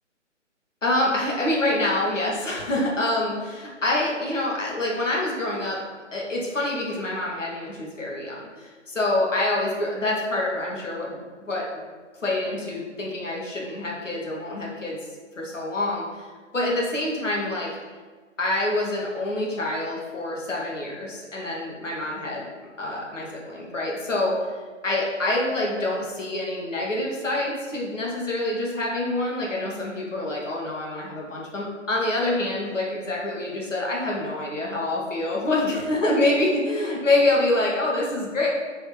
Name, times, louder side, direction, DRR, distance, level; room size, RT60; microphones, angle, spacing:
voice 1, 0.8-5.9 6.1-11.9 12.2-15.0 15.4-16.2 16.5-17.8 18.4-22.5 22.8-24.4 24.8-38.5, left 2 dB, 80° left, -3 dB, 1.3 m, -26 dB
3.4 x 3.1 x 4.8 m, 1.5 s
figure-of-eight pair, 140°, 37 cm